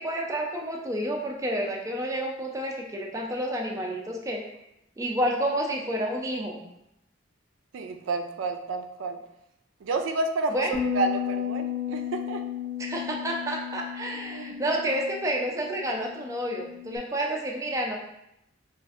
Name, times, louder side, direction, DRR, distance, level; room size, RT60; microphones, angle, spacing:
voice 1, 0.0-4.4 5.0-6.6 10.5-10.7 12.8-18.0, right 1 dB, 15° right, 0 dB, 0.4 m, -29 dB
voice 2, 7.7-9.2 9.8-10.6 10.9-12.4 12.9-13.0 14.3-14.7, right 3 dB, 80° right, 6 dB, 0.4 m, -30 dB
sound 1, 10.7-17.0, left 9 dB, 40° left, 0.6 m, -34 dB
4.9 x 2.5 x 2.4 m, 0.82 s
head